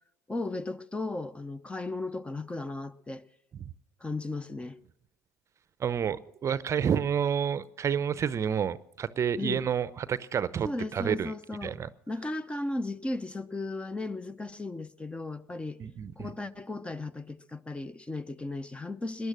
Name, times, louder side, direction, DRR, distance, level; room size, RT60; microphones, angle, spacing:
voice 1, 0.3-3.2 4.0-4.8 9.4-9.7 10.6-11.8 12.1-15.8 16.2-19.3, left 2 dB, 15° left, 0.7 m, -35 dB
voice 2, 5.8-11.3 11.6-11.9 15.8-16.3, right 8 dB, 35° right, 0.7 m, -29 dB
19.5 x 11.0 x 6.2 m
hypercardioid pair, 70°, 8 cm